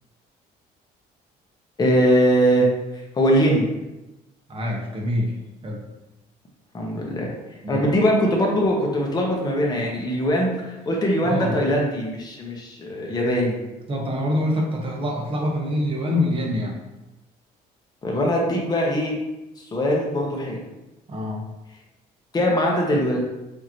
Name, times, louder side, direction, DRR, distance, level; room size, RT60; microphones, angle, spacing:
voice 1, 1.8-2.7 3.1-3.7 6.7-7.3 7.7-13.6 18.0-19.1 19.7-20.6 22.3-23.2, equal, 25° left, -1 dB, 0.9 m, -21 dB
voice 2, 4.5-5.3 5.6-5.8 7.6-7.8 11.2-11.6 13.9-16.8 21.1-21.4, left 1 dB, 30° right, -1 dB, 1.1 m, -25 dB
4.9 x 2.8 x 2.9 m, 1.0 s
cardioid pair, 110°, 17 cm